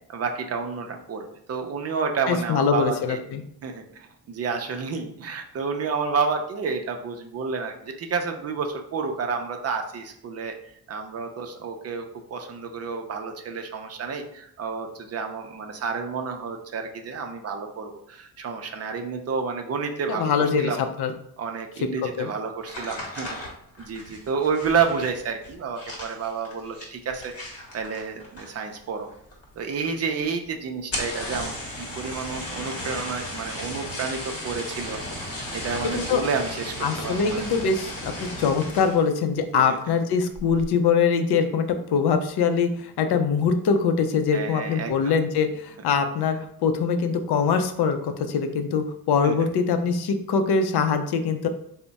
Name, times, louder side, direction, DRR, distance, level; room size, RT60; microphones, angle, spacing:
voice 1, 0.1-3.2 3.6-10.5 10.9-12.0 12.3-20.8 21.4-23.4 23.8-27.3 27.7-29.1 29.6-35.0 35.5-37.5 39.5-40.0 44.3-45.1 49.2-49.5, right 5 dB, 40° right, 5 dB, 0.5 m, -30 dB
voice 2, 2.3-3.4 20.1-21.1 22.2-22.3 35.9-36.2 36.8-41.7 41.9-51.5, left 5 dB, 75° left, 7 dB, 0.5 m, -23 dB
sound 1, 22.6-28.8 29.0-29.6 29.9-30.0 30.2-30.3 30.8-39.1 39.5-39.9 40.3-40.7, left 1 dB, 35° left, 1.0 m, -35 dB
3.4 x 2.1 x 3.9 m, 0.70 s
cardioid pair, 145°, 40 cm